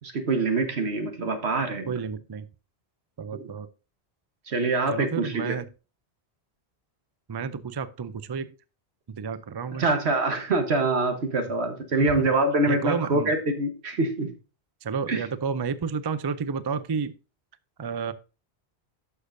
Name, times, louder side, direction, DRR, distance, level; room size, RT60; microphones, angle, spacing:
voice 1, 0.0-1.9 3.3-3.4 4.5-5.6 9.7-14.3 15.1-15.2, right 2 dB, 75° right, 6 dB, 1.5 m, -25 dB
voice 2, 1.9-2.5 3.2-3.7 4.9-5.7 7.3-8.5 9.1-9.9 12.2-12.3 12.7-13.3 14.8-17.1 17.8-18.1, right 6 dB, 40° right, 14 dB, 0.3 m, -31 dB
11.5 x 6.7 x 2.6 m, 0.32 s
omnidirectional pair, 1.1 m